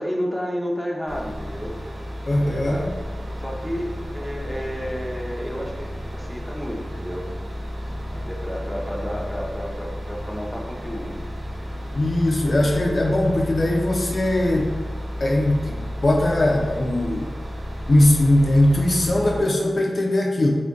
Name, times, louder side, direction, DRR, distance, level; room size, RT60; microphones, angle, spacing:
voice 1, 0.0-1.7 2.2-2.9 3.4-7.3 8.1-11.2, equal, 5° left, -2 dB, 0.5 m, -31 dB
sound 1, 1.1-19.4, equal, 80° right, 1.0 m, -32 dB
voice 2, 2.3-2.9 11.9-14.7 15.2-17.3 17.9-20.5, left 1 dB, 50° left, -1 dB, 0.4 m, -20 dB
3.7 x 2.2 x 3.4 m, 1.3 s
wide cardioid pair, 105°, 0 cm